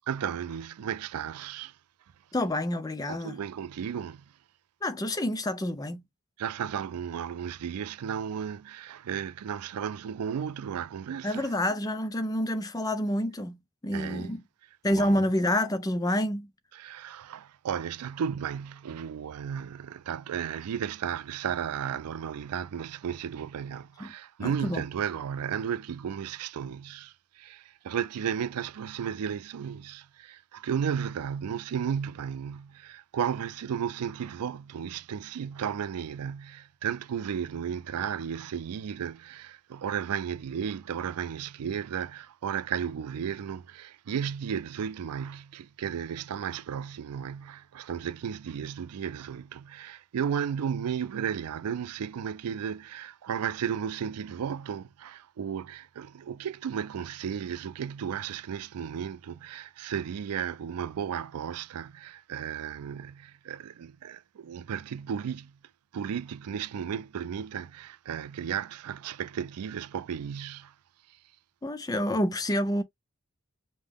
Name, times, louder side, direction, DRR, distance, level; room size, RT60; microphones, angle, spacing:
voice 1, 0.1-1.7 3.1-4.2 6.4-11.5 13.9-14.3 14.9-15.3 16.7-65.5 65.9-70.7, right 8 dB, 90° right, 0.4 m, -34 dB
voice 2, 2.3-3.4 4.8-6.0 11.2-14.4 14.8-16.5 24.0-24.1 24.4-24.8 71.6-72.8, left 1 dB, 15° left, 0.5 m, -28 dB
5.3 x 2.1 x 3.4 m
head